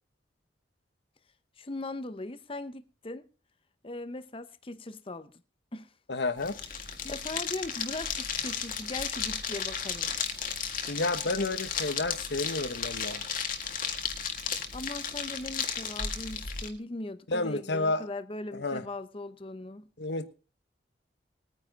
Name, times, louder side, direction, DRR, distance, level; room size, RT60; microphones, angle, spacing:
voice 1, 1.6-3.3 3.8-5.3 5.7-5.9 7.0-10.1 14.7-19.9, left 2 dB, 30° left, 0.7 m, -39 dB
voice 2, 6.1-6.6 10.9-13.2 17.3-18.1 18.5-18.8 20.0-20.3, left 2 dB, 70° left, 1.2 m, -30 dB
sound 1, 6.4-16.7, left 6 dB, 50° left, 1.8 m, -34 dB
20.0 x 9.5 x 4.0 m
head